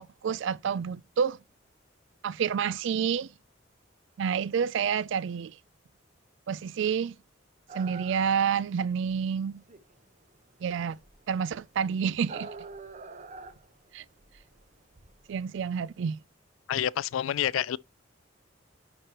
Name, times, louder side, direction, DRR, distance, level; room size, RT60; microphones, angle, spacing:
voice 1, 0.0-1.4 2.2-3.3 4.2-5.6 6.5-7.2 7.7-9.6 10.6-11.0 11.3-12.5 13.9-14.0 15.3-16.2, right 7 dB, 65° right, 0.3 m, -29 dB
sound 1, 7.7-16.2, right 4 dB, 40° right, 0.7 m, -46 dB
voice 2, 16.7-17.8, left 10 dB, 85° left, 0.3 m, -28 dB
9.7 x 4.5 x 2.9 m
head